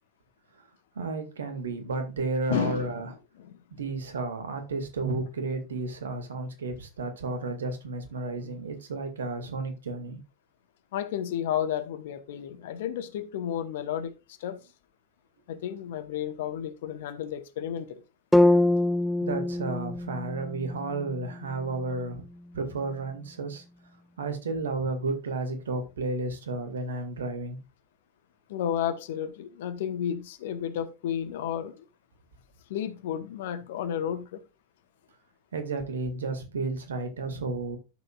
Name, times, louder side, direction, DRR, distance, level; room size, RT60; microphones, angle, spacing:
voice 1, 1.0-3.1 3.8-10.2 19.2-22.2 22.5-23.6 24.2-27.6 35.5-37.8, right 3 dB, 65° right, 2.1 m, -32 dB
voice 2, 2.5-3.6 10.9-14.6 15.5-18.0 28.5-31.8 32.7-34.4, left 9 dB, 55° left, 1.1 m, -32 dB
sound 1, 18.3-22.4, left 1 dB, 5° left, 0.4 m, -25 dB
12.5 x 6.9 x 2.4 m
figure-of-eight pair, 90°, 0 cm